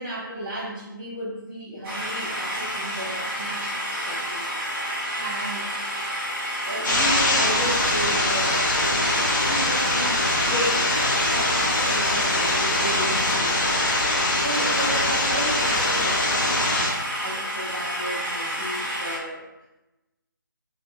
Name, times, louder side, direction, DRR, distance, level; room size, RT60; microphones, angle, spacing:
voice 1, 0.0-3.8 4.0-4.5 5.2-5.7 6.6-8.6 8.9-10.2 10.5-10.9 11.3-13.6 14.4-16.7 17.0-19.4, right 1 dB, 25° right, -6 dB, 1.5 m, -33 dB
sound 1, 1.8-19.2, equal, 10° right, 0.9 m, -30 dB
sound 2, 6.8-16.9, left 1 dB, 60° left, 1.3 m, -23 dB
4.4 x 2.6 x 2.6 m, 0.98 s
figure-of-eight pair, 155°, 12 cm